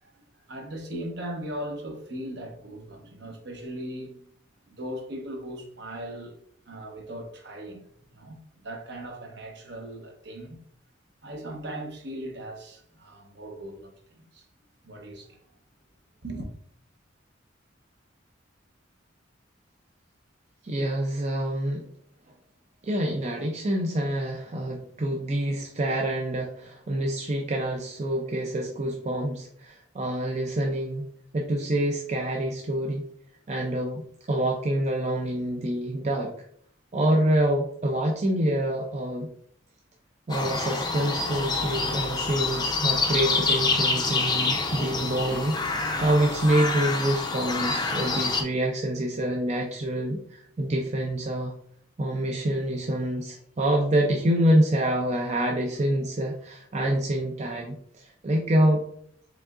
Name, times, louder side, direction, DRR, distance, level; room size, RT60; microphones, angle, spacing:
voice 1, 0.5-4.3 4.7-6.4 6.7-10.6 11.2-14.4 14.8-15.4 16.2-16.5, right 1 dB, 60° right, 0.9 m, -38 dB
voice 2, 20.6-21.8 22.8-31.1 31.3-33.0 33.5-36.3 36.9-39.3 40.3-51.5 52.0-58.8, right 1 dB, 35° right, 0.5 m, -26 dB
sound 1, 40.3-48.4, left 3 dB, 20° left, 0.5 m, -27 dB
4.9 x 3.6 x 2.4 m
head